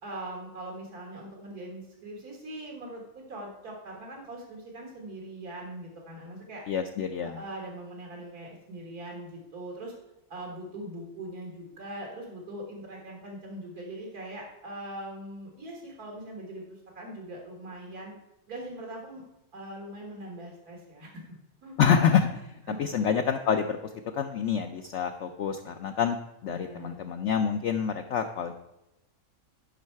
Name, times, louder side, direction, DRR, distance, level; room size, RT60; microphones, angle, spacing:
voice 1, 0.0-6.6 7.2-9.9 10.3-18.1 18.5-19.2 19.5-21.4 21.6-21.7 22.7-22.9 26.4-27.0, right 1 dB, 85° right, 0 dB, 2.1 m, -41 dB
voice 2, 6.7-7.4 21.8-22.3 22.8-23.8 24.1-26.2 26.4-28.5, left 7 dB, 65° left, 5 dB, 0.7 m, -26 dB
10.5 x 5.5 x 4.5 m, 0.92 s
omnidirectional pair, 1.6 m